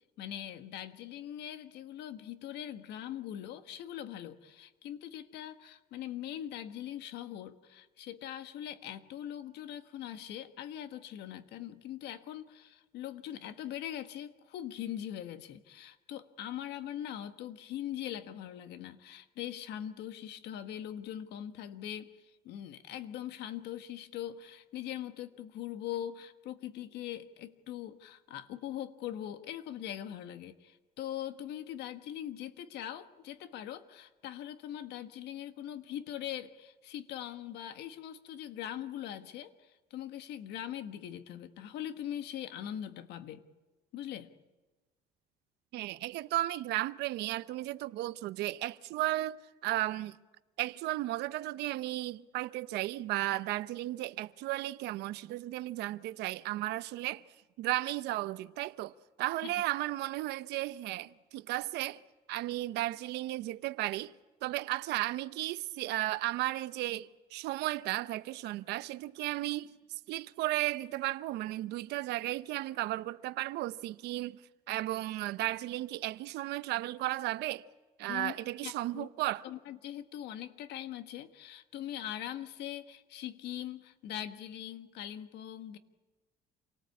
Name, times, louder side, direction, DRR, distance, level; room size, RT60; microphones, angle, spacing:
voice 1, 0.2-43.4 43.9-44.3 59.4-59.5 78.1-78.3 78.6-79.1 79.4-85.8, left 11 dB, 80° left, 1.5 m, -41 dB
voice 2, 45.7-49.4 49.6-50.2 50.6-57.2 57.6-58.9 59.2-62.0 62.3-64.1 64.4-69.8 70.1-74.4 74.7-77.7 78.0-79.4, right 16 dB, 85° right, 0.7 m, -34 dB
27.5 x 19.0 x 8.4 m
cardioid pair, 110°, 17 cm